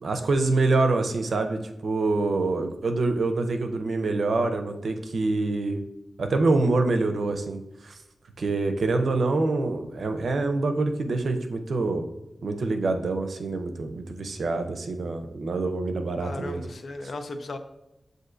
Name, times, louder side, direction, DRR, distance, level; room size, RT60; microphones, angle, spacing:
voice 1, 0.0-5.8 6.2-7.9 8.4-12.0 12.4-16.6, right 3 dB, 85° right, 6 dB, 0.5 m, -26 dB
voice 2, 16.2-17.6, left 2 dB, 75° left, 7 dB, 0.5 m, -35 dB
7.7 x 2.6 x 2.5 m, 0.92 s
wide cardioid pair, 90°, 0 cm